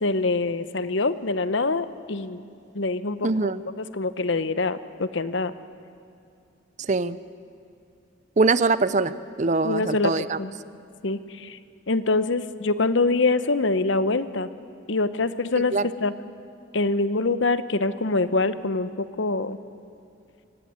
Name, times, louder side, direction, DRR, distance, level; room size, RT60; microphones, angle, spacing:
voice 1, 0.0-2.4 2.7-3.5 3.8-5.5 9.6-10.1 10.4-10.5 11.0-11.6 11.9-14.5 14.9-15.7 16.0-16.1 16.7-19.6, left 3 dB, 70° left, 13 dB, 0.9 m, -24 dB
voice 2, 3.2-3.6 6.8-7.2 8.4-9.1 9.4-10.4 15.7-15.9, right 3 dB, 35° right, 15 dB, 0.6 m, -22 dB
24.0 x 17.5 x 9.6 m, 2.6 s
head